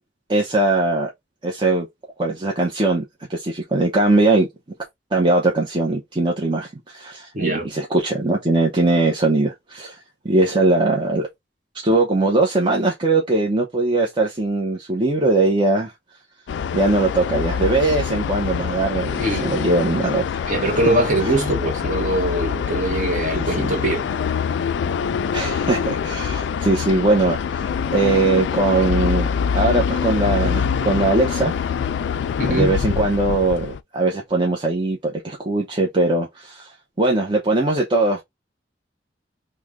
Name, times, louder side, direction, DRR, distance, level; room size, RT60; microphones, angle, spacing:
voice 1, 0.3-1.1 1.4-1.9 2.2-3.0 3.3-4.5 5.1-10.0 10.2-11.3 11.7-15.9 16.7-21.0 21.2-21.3 23.3-23.7 25.3-29.3 29.5-31.5 32.5-38.2, right 2 dB, 30° right, 0.7 m, -20 dB
voice 2, 7.3-7.7 19.2-19.5 20.5-24.0 32.4-32.7, right 1 dB, 45° right, 1.3 m, -22 dB
sound 1, 16.5-33.8, left 7 dB, 80° left, 0.3 m, -25 dB
3.2 x 2.1 x 3.5 m
head